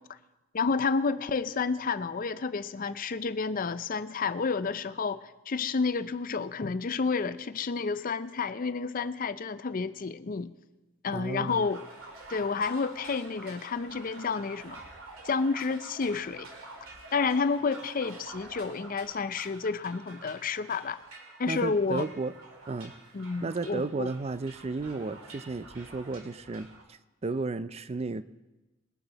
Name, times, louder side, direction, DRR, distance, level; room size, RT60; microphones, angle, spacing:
voice 1, 0.5-10.5 11.0-11.8 12.3-14.8 15.2-16.5 17.1-21.0 21.4-22.1 23.1-24.1, left 4 dB, 40° left, 13 dB, 0.5 m, -30 dB
voice 2, 11.1-11.7 21.5-22.4 22.7-22.9 23.4-28.2, right 3 dB, 30° right, 14 dB, 0.4 m, -33 dB
sound 1, 11.5-26.8, right 2 dB, 75° right, 1.9 m, -48 dB
21.5 x 9.0 x 4.0 m, 1.1 s
head